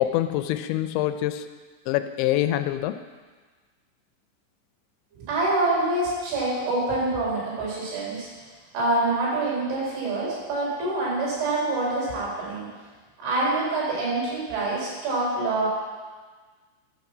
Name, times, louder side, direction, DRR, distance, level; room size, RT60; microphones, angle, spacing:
voice 1, 0.0-1.5 1.9-3.0, left 13 dB, 85° left, 10 dB, 2.8 m, -25 dB
voice 2, 5.2-8.3 8.7-12.7 13.2-15.7, right 2 dB, 90° right, -6 dB, 6.3 m, -26 dB
12.5 x 5.9 x 7.2 m, 1.4 s
omnidirectional pair, 5.3 m